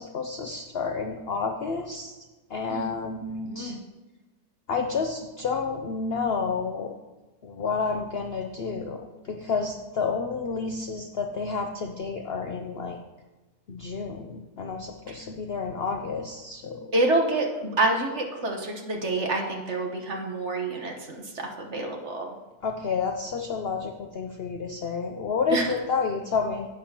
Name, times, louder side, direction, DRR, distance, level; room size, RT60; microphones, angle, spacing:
voice 1, 0.0-2.1 2.5-3.7 4.7-6.9 7.4-13.0 13.7-16.8 22.6-26.7, left 5 dB, 60° left, 4 dB, 0.6 m, -30 dB
voice 2, 3.5-3.8 16.9-22.3 25.5-25.8, right 2 dB, 50° right, 2 dB, 1.4 m, -27 dB
11.5 x 8.5 x 2.9 m, 1.2 s
omnidirectional pair, 1.7 m